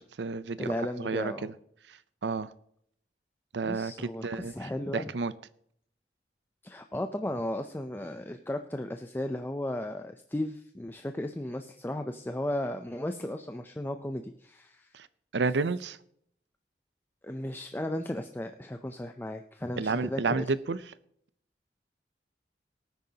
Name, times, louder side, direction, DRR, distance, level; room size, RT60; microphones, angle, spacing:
voice 1, 0.0-1.5 1.9-2.5 3.5-5.3 14.9-15.1 15.3-16.0 19.8-20.8, right 4 dB, 85° right, 16 dB, 0.6 m, -31 dB
voice 2, 0.6-1.5 3.6-5.1 6.6-14.9 17.2-20.5, left 1 dB, 10° left, 6 dB, 0.5 m, -35 dB
18.5 x 9.3 x 2.9 m, 0.67 s
head